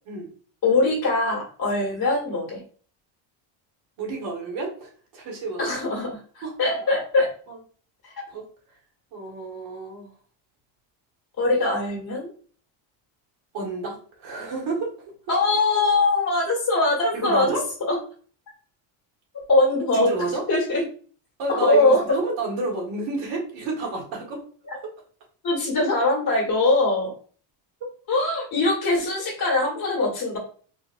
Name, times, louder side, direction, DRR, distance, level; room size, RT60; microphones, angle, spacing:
voice 1, 0.6-2.6 5.6-7.3 8.0-8.1 11.4-12.3 15.3-17.5 17.8-18.0 19.5-20.1 20.5-20.8 21.5-22.0 25.4-27.1 28.1-30.4, left 2 dB, 45° left, -4 dB, 1.7 m, -22 dB
voice 2, 4.0-5.6 6.4-6.5 7.5-7.6 8.3-8.4 9.1-10.1 13.5-14.9 17.1-17.6 19.9-20.4 21.4-24.4 27.8-27.9, right 3 dB, 65° right, -1 dB, 1.8 m, -30 dB
4.4 x 2.6 x 2.5 m, 0.43 s
cardioid pair, 150°, 49 cm